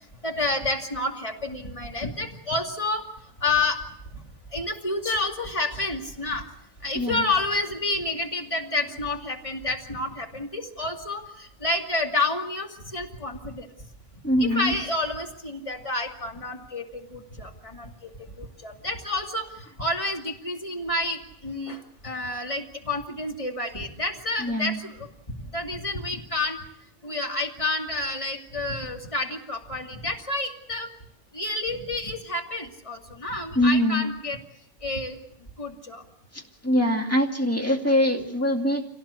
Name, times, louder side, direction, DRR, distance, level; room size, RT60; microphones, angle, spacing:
voice 1, 0.2-3.1 3.4-3.8 4.1-4.2 4.5-6.4 6.8-13.7 14.4-26.6 27.0-30.9 31.3-34.4 34.8-35.2 35.6-36.0, left 2 dB, 30° left, 2 dB, 2.5 m, -29 dB
voice 2, 6.9-7.3 14.2-14.7 24.4-24.8 27.0-27.2 33.5-34.1 36.3-38.8, left 1 dB, 10° left, 2 dB, 2.4 m, -23 dB
26.5 x 18.0 x 8.2 m, 0.77 s
omnidirectional pair, 1.2 m